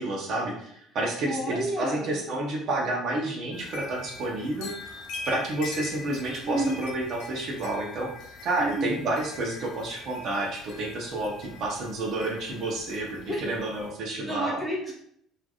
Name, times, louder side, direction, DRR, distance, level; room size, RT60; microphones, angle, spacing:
voice 1, 0.0-14.6, right 2 dB, 55° right, -1 dB, 0.7 m, -30 dB
voice 2, 1.3-2.1 6.4-6.8 8.6-9.0 13.3-13.4 14.2-14.9, right 1 dB, 10° left, -4 dB, 1.0 m, -30 dB
sound 1, 3.5-13.9, left 3 dB, 80° left, 0.7 m, -43 dB
3.2 x 2.5 x 2.3 m, 0.70 s
cardioid pair, 120°, 0 cm